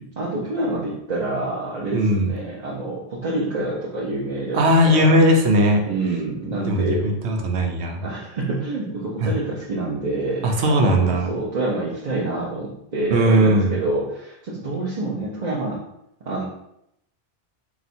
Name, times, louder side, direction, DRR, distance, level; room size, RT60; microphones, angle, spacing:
voice 1, 0.0-5.2 5.9-7.2 8.0-15.8 16.3-16.4, right 2 dB, 45° right, -6 dB, 0.8 m, -27 dB
voice 2, 1.9-2.3 4.5-5.8 6.5-8.0 9.2-9.3 10.4-11.3 13.1-13.8, equal, 90° right, 3 dB, 1.0 m, -18 dB
4.0 x 2.4 x 4.2 m, 0.79 s
omnidirectional pair, 1.1 m